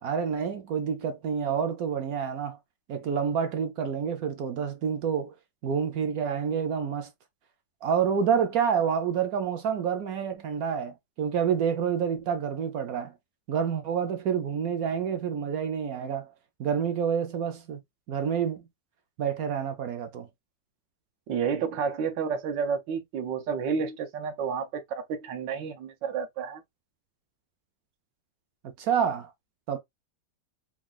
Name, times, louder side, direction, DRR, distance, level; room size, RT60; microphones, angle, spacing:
voice 1, 0.0-2.6 2.9-5.3 5.6-7.1 7.8-13.1 13.5-16.3 16.6-17.8 18.1-18.6 19.2-20.3 28.6-29.3 29.7-29.8, right 7 dB, 65° right, 1.0 m, -28 dB
voice 2, 21.3-26.6, right 6 dB, 85° right, 1.5 m, -30 dB
3.7 x 2.4 x 3.7 m
omnidirectional pair, 1.9 m